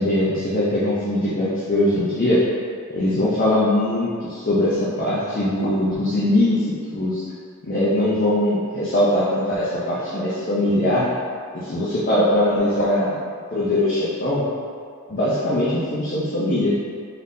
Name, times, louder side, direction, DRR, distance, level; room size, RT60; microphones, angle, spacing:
voice 1, 0.0-2.4 2.9-7.2 7.6-11.1 11.5-13.2 13.5-14.4 15.1-16.7, left 1 dB, 40° left, -9 dB, 0.5 m, -21 dB
3.9 x 3.5 x 2.7 m, 2.2 s
head